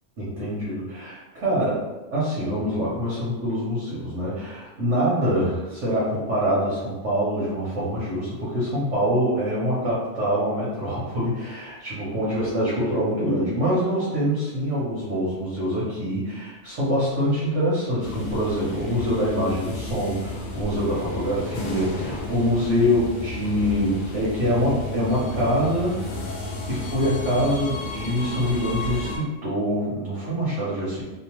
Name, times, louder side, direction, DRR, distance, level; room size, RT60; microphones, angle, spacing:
voice 1, 0.2-1.8 2.1-26.0 26.6-31.0, equal, 80° right, -8 dB, 1.2 m, -25 dB
sound 1, 18.0-29.2, left 2 dB, 60° left, 0.5 m, -33 dB
2.8 x 2.1 x 2.9 m, 1.1 s
omnidirectional pair, 1.2 m